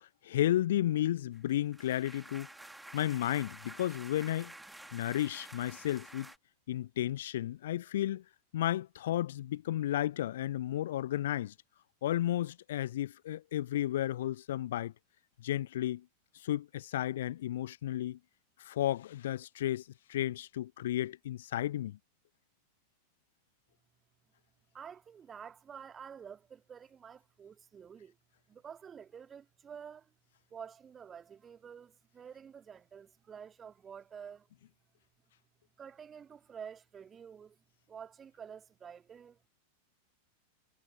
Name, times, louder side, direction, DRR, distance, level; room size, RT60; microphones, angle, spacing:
voice 1, 0.0-2.5 2.9-4.5 4.9-6.3 6.7-8.2 8.5-11.5 12.0-14.9 15.4-16.0 16.4-18.2 18.6-19.8 20.1-22.0, left 13 dB, 60° left, 0.7 m, -33 dB
sound 1, 1.3-6.4, right 1 dB, 5° right, 2.3 m, -50 dB
voice 2, 24.7-28.2 28.5-30.1 30.5-34.5 35.8-39.5, right 7 dB, 20° right, 2.0 m, -49 dB
figure-of-eight pair, 90°, 0 cm